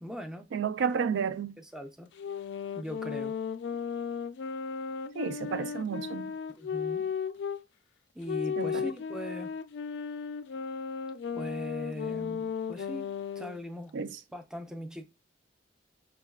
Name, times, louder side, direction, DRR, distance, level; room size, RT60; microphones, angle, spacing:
voice 1, 0.0-0.5 1.6-2.1 2.7-3.4 6.6-7.1 8.1-9.5 11.3-14.0 14.3-15.0, equal, 5° right, 0.4 m, -40 dB
voice 2, 0.5-1.6 5.1-6.3 8.6-8.9 13.9-14.2, right 6 dB, 85° right, 0.4 m, -31 dB
sound 1, 2.2-7.6 8.3-13.6, left 6 dB, 70° left, 0.3 m, -35 dB
5.5 x 2.2 x 2.2 m
head